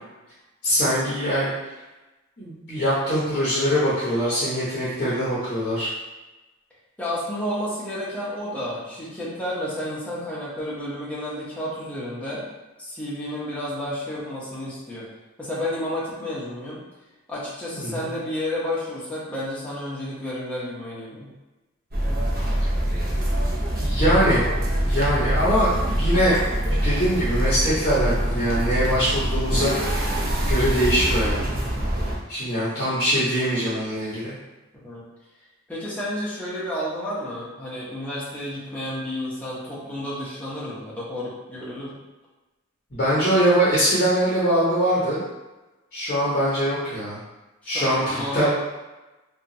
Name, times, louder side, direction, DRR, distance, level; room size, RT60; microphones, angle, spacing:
voice 1, 0.6-1.5 2.4-5.9 17.8-18.1 23.8-24.4 24.8-26.4 26.7-30.2 30.5-31.4 32.3-34.4 42.9-45.2 45.9-47.2 47.7-48.5, equal, 40° left, -10 dB, 0.7 m, -22 dB
voice 2, 7.0-12.4 12.8-15.1 15.4-16.8 17.3-21.3 34.7-35.0 35.7-42.0 47.6-48.5, left 1 dB, 5° left, -8 dB, 0.7 m, -31 dB
Caltrain Departs Redwood City, 21.9-32.2, right 1 dB, 45° right, 0.6 m, -24 dB
2.8 x 2.3 x 2.6 m, 1.1 s
head